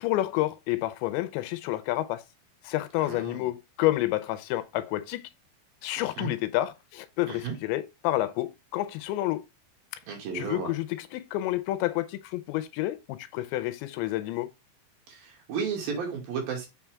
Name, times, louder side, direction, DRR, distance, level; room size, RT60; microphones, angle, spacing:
voice 1, 0.0-2.2 2.6-5.3 5.8-9.4 10.3-14.5, left 16 dB, 85° left, 3.0 m, -29 dB
voice 2, 3.0-3.5 6.2-6.3 7.3-7.6 10.1-10.7 15.1-16.7, right 6 dB, 55° right, 3.7 m, -33 dB
7.2 x 5.8 x 3.5 m
omnidirectional pair, 5.2 m